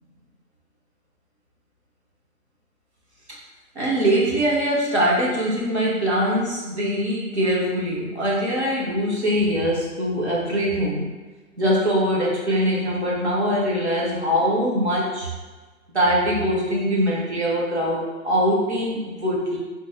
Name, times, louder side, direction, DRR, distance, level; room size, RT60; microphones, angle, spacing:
voice 1, 3.7-11.1 11.6-15.3 15.9-19.6, equal, 45° right, -5 dB, 0.7 m, -22 dB
2.6 x 2.0 x 3.7 m, 1.3 s
hypercardioid pair, 180°, 49 cm